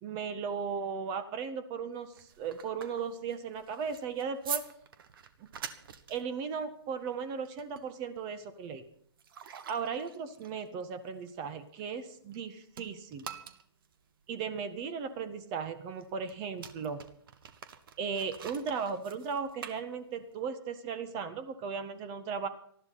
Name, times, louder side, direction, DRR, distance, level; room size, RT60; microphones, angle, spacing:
voice 1, 0.0-4.6 5.4-5.5 6.1-8.8 9.7-13.3 14.3-17.0 18.0-22.5, right 6 dB, 30° right, 12 dB, 1.6 m, -36 dB
sound 1, 1.9-12.4 12.7-20.4, right 7 dB, 55° right, 1.7 m, -46 dB
19.5 x 14.0 x 4.2 m, 0.65 s
figure-of-eight pair, 125°, 14 cm